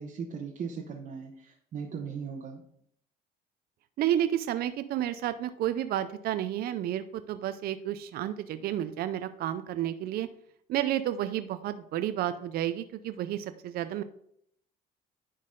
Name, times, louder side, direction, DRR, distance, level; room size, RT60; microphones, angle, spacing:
voice 1, 0.0-2.6, right 6 dB, 50° right, -1 dB, 1.0 m, -38 dB
voice 2, 4.0-10.3 10.7-14.0, right 11 dB, 65° right, 11 dB, 0.5 m, -31 dB
10.0 x 4.0 x 3.8 m, 0.69 s
cardioid pair, 110°, 17 cm